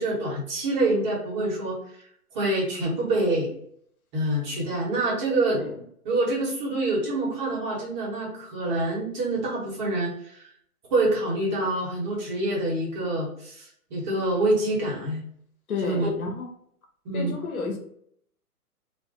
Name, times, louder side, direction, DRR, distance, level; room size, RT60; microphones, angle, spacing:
voice 1, 0.0-1.8 2.3-3.5 4.1-5.6 6.0-10.4 10.9-15.2 15.8-16.1 17.0-17.3, right 2 dB, 30° right, -3 dB, 0.9 m, -26 dB
voice 2, 15.7-16.5 17.1-17.8, left 3 dB, 70° left, 2 dB, 0.9 m, -31 dB
2.4 x 2.1 x 3.7 m, 0.67 s
hypercardioid pair, 140°, 45 cm